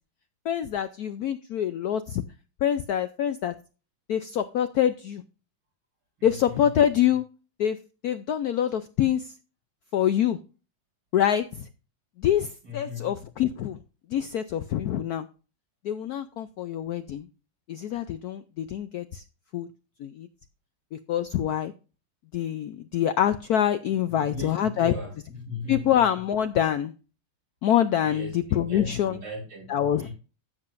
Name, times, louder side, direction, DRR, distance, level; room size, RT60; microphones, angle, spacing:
voice 1, 0.5-2.2 2.6-3.5 4.1-5.2 6.2-7.2 7.6-7.8 8.0-9.3 9.9-10.4 11.1-11.7 12.2-13.8 14.1-15.3 15.8-17.3 17.7-19.2 19.5-19.7 20.0-20.3 21.1-21.7 22.3-24.9 25.7-26.9 27.6-29.2 29.7-30.1, left 10 dB, 80° left, 11 dB, 0.8 m, -25 dB
voice 2, 12.6-13.2 24.1-25.9 28.0-29.7 30.0-30.1, left 3 dB, 80° right, -3 dB, 5.5 m, -37 dB
15.0 x 7.5 x 2.5 m, 0.34 s
omnidirectional pair, 2.2 m